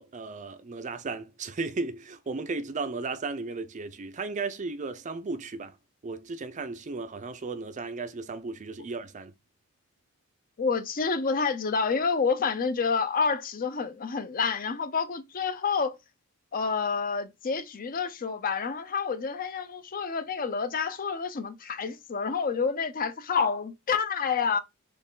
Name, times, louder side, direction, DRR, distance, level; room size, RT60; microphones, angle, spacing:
voice 1, 0.0-5.8 6.0-9.3, right 3 dB, 35° right, 0.4 m, -35 dB
voice 2, 10.6-16.0 16.5-24.6, left 5 dB, 40° left, 0.5 m, -28 dB
4.3 x 3.1 x 3.7 m
head